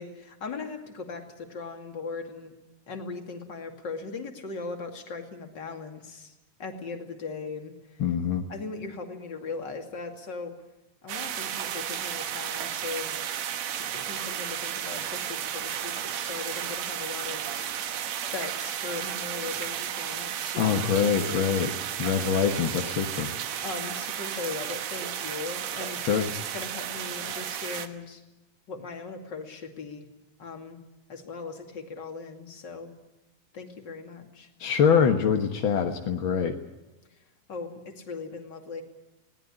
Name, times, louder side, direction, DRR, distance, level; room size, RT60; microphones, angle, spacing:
voice 1, 0.0-2.5 2.9-6.3 6.6-8.0 8.5-10.5 11.0-13.2 13.7-21.5 23.6-26.2 26.5-28.2 28.7-30.1 30.4-30.8 31.1-32.9 33.5-34.5 37.5-38.8, left 4 dB, 35° left, 4 dB, 2.6 m, -39 dB
voice 2, 8.0-8.4 20.6-21.7 22.0-23.3 26.1-26.3 34.6-36.5, left 7 dB, 60° left, 4 dB, 1.4 m, -24 dB
sound 1, 11.1-27.9, right 9 dB, 60° right, 2.1 m, -33 dB
21.0 x 18.5 x 9.9 m, 1.0 s
omnidirectional pair, 4.0 m